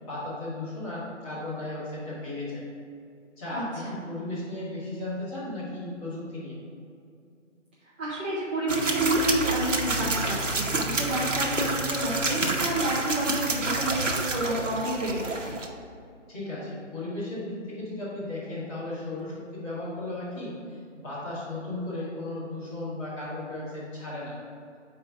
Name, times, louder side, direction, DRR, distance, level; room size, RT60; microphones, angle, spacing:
voice 1, 0.0-2.6 3.4-6.6 16.3-20.5 21.0-24.4, left 2 dB, 10° left, -11 dB, 1.5 m, -35 dB
voice 2, 3.5-4.0 8.0-15.6, right 1 dB, 10° right, -16 dB, 0.6 m, -29 dB
sound 1, 8.7-15.7, right 2 dB, 80° right, 1.0 m, -28 dB
5.2 x 4.5 x 5.7 m, 2.4 s
figure-of-eight pair, 150°, 37 cm